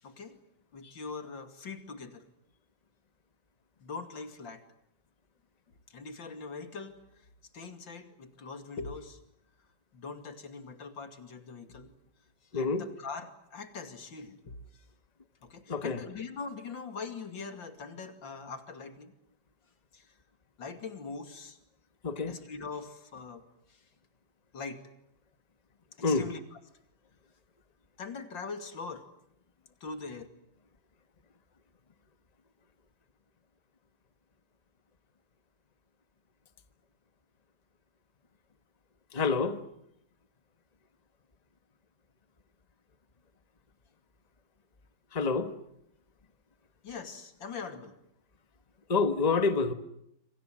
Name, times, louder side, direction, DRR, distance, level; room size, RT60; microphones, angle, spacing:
voice 1, 0.0-0.4 0.7-2.2 3.8-4.6 5.9-7.0 7.5-9.2 9.9-11.9 12.5-14.8 15.4-19.1 19.9-20.1 20.6-21.6 22.2-23.4 23.7-23.8 24.5-24.8 26.0-26.6 28.0-29.0 29.8-30.3 46.8-48.0, left 4 dB, 85° left, 3.2 m, -42 dB
voice 2, 22.0-22.4 26.0-26.2 39.1-39.6 45.1-45.5 48.9-49.7, left 4 dB, 25° left, 1.4 m, -27 dB
28.0 x 26.0 x 7.6 m
omnidirectional pair, 2.0 m